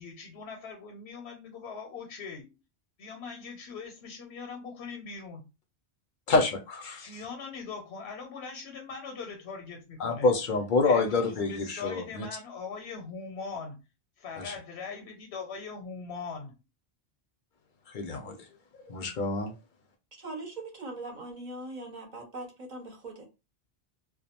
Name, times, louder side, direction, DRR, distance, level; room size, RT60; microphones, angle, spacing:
voice 1, 0.0-2.5 3.0-5.5 7.0-10.3 10.8-13.8 14.2-16.6, left 5 dB, 85° left, 0.9 m, -41 dB
voice 2, 6.3-7.0 10.0-12.3 14.4-14.5 17.9-18.4 18.8-19.5, left 3 dB, 60° left, 0.6 m, -27 dB
voice 3, 20.1-23.2, right 2 dB, 50° right, 0.8 m, -41 dB
2.3 x 2.1 x 2.8 m
omnidirectional pair, 1.1 m